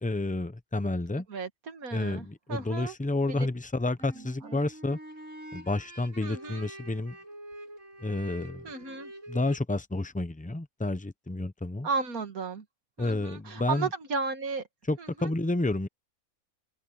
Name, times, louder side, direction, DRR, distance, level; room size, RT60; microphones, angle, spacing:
voice 1, 0.0-1.3 1.9-5.0 5.5-7.2 8.0-8.7 9.3-11.9 13.0-13.9 14.9-15.9, left 2 dB, 10° left, 0.5 m, -30 dB
voice 2, 1.3-2.9 3.3-3.5 4.1-4.6 6.2-6.7 8.6-9.1 11.8-12.6 13.0-14.6 15.0-15.3, right 4 dB, 85° right, 2.3 m, -34 dB
sound 1, 4.0-9.6, right 1 dB, 60° right, 8.3 m, -46 dB
omnidirectional pair, 1.5 m